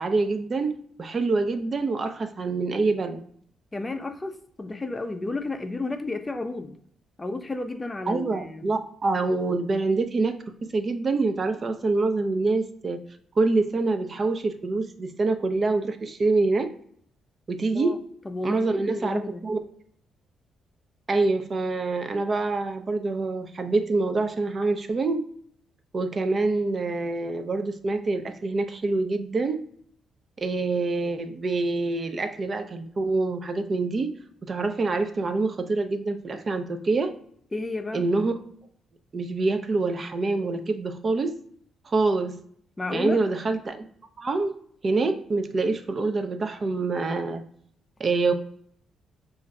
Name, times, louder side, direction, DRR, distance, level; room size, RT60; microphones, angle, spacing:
voice 1, 0.0-3.2 8.1-10.4 10.7-13.0 13.4-16.7 17.5-18.0 18.4-19.6 21.1-25.3 25.9-29.6 30.4-34.1 34.5-37.1 37.9-38.3 39.1-41.4 41.9-42.4 42.9-43.9 44.2-44.6 44.8-47.4 48.0-48.3, right 3 dB, 45° right, 8 dB, 0.4 m, -26 dB
voice 2, 3.7-6.8 7.2-8.6 17.7-18.0 18.3-19.5 37.5-38.0 42.8-43.2, left 2 dB, 20° left, 7 dB, 0.4 m, -32 dB
2.5 x 2.1 x 3.9 m, 0.63 s
cardioid pair, 70°, 0 cm